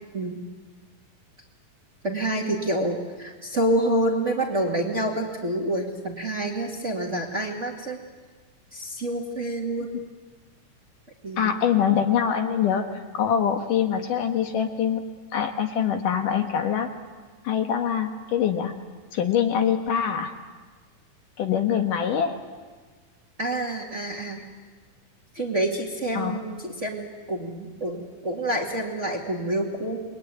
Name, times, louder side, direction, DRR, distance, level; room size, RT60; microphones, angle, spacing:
voice 1, 0.1-0.4 2.0-8.0 8.7-9.9 11.2-11.6 23.4-24.4 25.3-30.0, right 1 dB, 25° right, 0 dB, 2.1 m, -27 dB
voice 2, 11.4-16.9 17.4-18.8 19.1-20.3 21.4-22.4 26.2-26.4, left 8 dB, 65° left, 5 dB, 2.8 m, -24 dB
29.0 x 21.5 x 9.3 m, 1.4 s
omnidirectional pair, 4.2 m